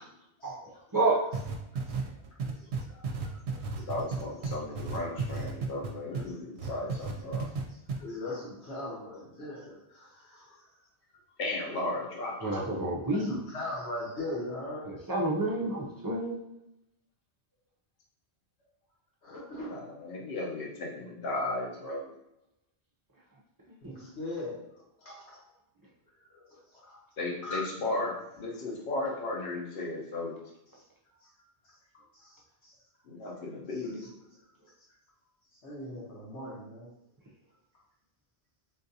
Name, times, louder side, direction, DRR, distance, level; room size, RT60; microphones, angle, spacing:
voice 1, 0.4-0.8 1.7-2.1 2.4-3.9 5.6-5.8 6.1-6.3 6.6-7.0 7.7-10.7 13.1-15.0 19.2-19.9 23.8-25.5 26.1-27.1 27.4-27.9 30.7-32.9 33.7-34.1 34.4-34.9 35.5-36.9, left 1 dB, 80° left, -6 dB, 1.6 m, -42 dB
sound 1, 1.3-6.3 6.6-7.6 7.9-8.0, right 4 dB, 75° right, 0.8 m, -33 dB
voice 2, 3.8-7.5 11.4-12.9 19.7-22.1 27.2-30.3 33.1-34.1, left 2 dB, 60° left, -2 dB, 1.0 m, -35 dB
voice 3, 12.4-13.4 14.9-16.4 23.8-23.9, right 2 dB, 30° right, -4 dB, 0.4 m, -29 dB
3.8 x 2.5 x 2.7 m, 0.86 s
omnidirectional pair, 1.1 m